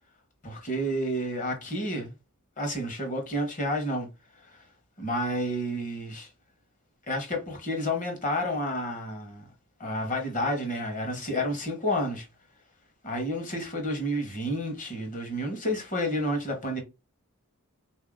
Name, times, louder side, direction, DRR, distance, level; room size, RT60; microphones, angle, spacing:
voice 1, 0.4-2.1 2.6-4.1 4.5-4.6 5.0-6.3 7.1-9.5 9.8-12.3 13.0-16.8, equal, 35° left, 1.1 m, -30 dB
3.4 x 2.7 x 3.6 m
head